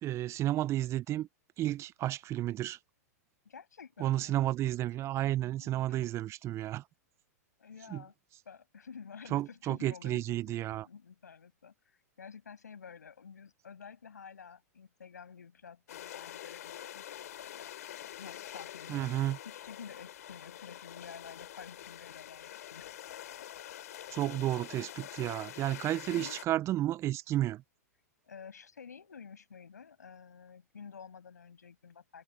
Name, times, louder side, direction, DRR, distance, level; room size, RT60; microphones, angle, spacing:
voice 1, 0.0-1.3 1.6-2.8 4.0-6.8 7.9-8.0 9.3-10.9 18.9-19.4 24.1-27.6, right 14 dB, 30° right, 0.8 m, -32 dB
voice 2, 3.4-4.5 5.6-6.0 7.6-8.1 8.5-22.9 26.1-26.4 28.3-32.2, left 6 dB, 85° left, 7.3 m, -50 dB
sound 1, 15.9-26.5, left 12 dB, 65° left, 4.3 m, -46 dB
hypercardioid pair, 110°, 9 cm